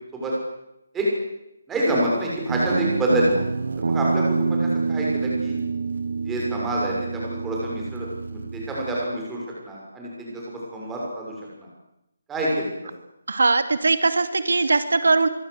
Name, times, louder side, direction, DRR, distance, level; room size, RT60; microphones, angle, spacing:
voice 1, 1.7-3.4 3.8-5.6 6.2-11.7 12.3-12.7, right 1 dB, 5° right, -4 dB, 6.5 m, -27 dB
Guitar, 2.5-9.0, right 4 dB, 60° right, 1.0 m, -26 dB
voice 2, 13.3-15.3, right 3 dB, 85° right, 10 dB, 2.5 m, -20 dB
24.5 x 23.5 x 8.2 m, 0.86 s
hypercardioid pair, 175°, 0 cm